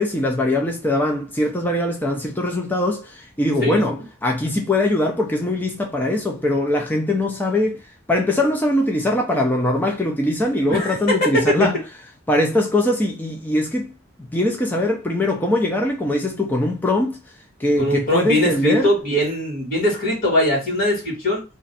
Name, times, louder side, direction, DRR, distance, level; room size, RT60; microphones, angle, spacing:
voice 1, 0.0-7.8 8.1-11.7 12.3-13.9 14.3-17.2 17.6-18.9, left 1 dB, 10° left, 0.5 m, -21 dB
voice 2, 3.6-4.0 10.7-11.5 17.8-21.4, left 1 dB, 45° left, 1.9 m, -21 dB
3.1 x 2.5 x 4.0 m
head